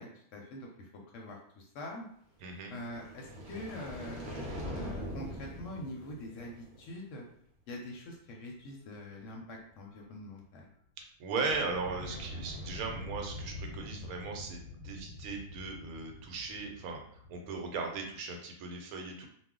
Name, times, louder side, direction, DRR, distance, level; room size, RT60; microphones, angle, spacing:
voice 1, 0.0-2.1 2.7-4.3 4.7-7.2 7.7-10.7, left 1 dB, 70° left, 0 dB, 0.8 m, -44 dB
voice 2, 2.4-2.7 11.2-17.0 17.3-19.3, right 4 dB, 75° right, 2 dB, 1.0 m, -37 dB
sound 1, 2.7-7.0, equal, 45° right, 0.6 m, -42 dB
sound 2, 3.3-5.9 6.4-6.5 8.0-8.3 8.6-10.0 10.3-10.4 10.6-10.7 11.0-11.1 11.5-18.2, left 1 dB, 90° left, 1.1 m, -46 dB
2.4 x 2.1 x 3.6 m, 0.64 s
omnidirectional pair, 1.6 m